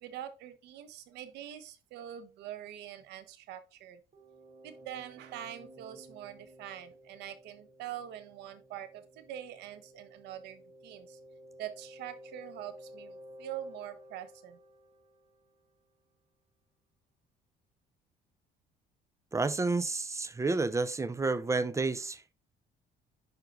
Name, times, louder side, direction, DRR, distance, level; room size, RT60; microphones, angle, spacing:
voice 1, 0.0-4.0 4.6-11.2 11.6-14.6, right 11 dB, 85° right, 1.1 m, -44 dB
sound 1, 4.1-15.7, equal, 45° right, 3.0 m, -54 dB
voice 2, 19.3-22.3, right 3 dB, 15° right, 0.5 m, -30 dB
10.5 x 4.5 x 2.5 m
cardioid pair, 110°, 17 cm